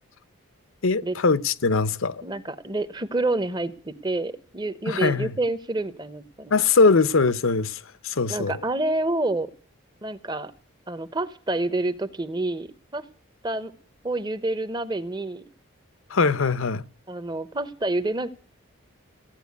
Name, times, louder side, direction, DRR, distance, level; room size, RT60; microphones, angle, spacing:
voice 1, 0.8-2.2 4.9-5.3 6.5-8.6 16.1-16.8, left 4 dB, 70° left, 0.7 m, -21 dB
voice 2, 2.2-6.6 8.3-9.5 10.0-10.5 10.9-13.0 13.4-13.7 14.0-15.4 17.1-18.3, right 2 dB, 20° right, 0.9 m, -28 dB
16.0 x 9.0 x 9.5 m
head